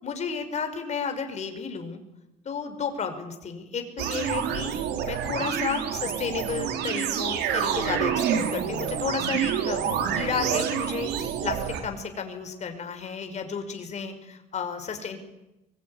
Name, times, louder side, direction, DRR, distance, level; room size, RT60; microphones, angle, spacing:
voice 1, 0.0-2.0 2.5-4.7 5.1-9.8 10.1-11.1 11.4-15.2, left 6 dB, 40° left, 6 dB, 5.4 m, -32 dB
sound 1, 4.0-11.8, right 8 dB, 80° right, 3.8 m, -28 dB
23.5 x 22.0 x 10.0 m, 0.95 s
cardioid pair, 110°, 17 cm